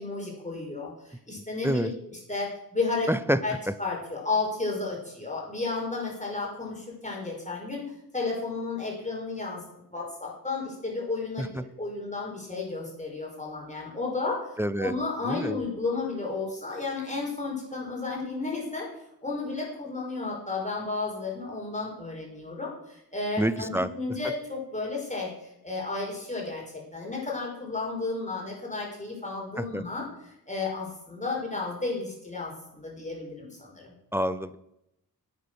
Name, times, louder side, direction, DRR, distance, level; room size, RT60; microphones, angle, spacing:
voice 1, 0.0-3.1 3.4-7.8 8.1-9.6 9.9-11.5 11.8-14.5 14.8-18.9 19.2-25.3 25.6-33.9, left 3 dB, 20° left, -2 dB, 5.1 m, -33 dB
voice 2, 3.1-3.4 11.4-11.5 14.6-14.9 15.2-15.6 23.4-23.9 29.6-29.8 34.1-34.6, equal, 5° right, 14 dB, 0.6 m, -27 dB
10.0 x 8.5 x 6.3 m, 0.82 s
wide cardioid pair, 65°, 38 cm